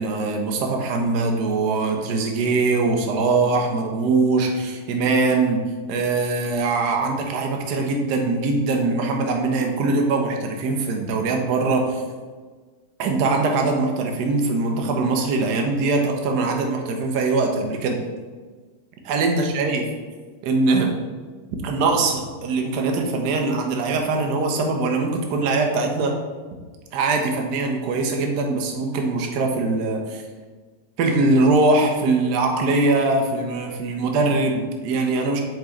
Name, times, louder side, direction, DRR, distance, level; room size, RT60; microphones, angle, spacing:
voice 1, 0.0-5.6 5.9-12.0 13.0-18.0 19.0-19.8 20.4-20.9 21.6-26.1 26.9-30.2 31.0-35.4, right 3 dB, 45° right, 2 dB, 1.0 m, -22 dB
6.5 x 4.8 x 3.3 m, 1.4 s
figure-of-eight pair, 90°, 0 cm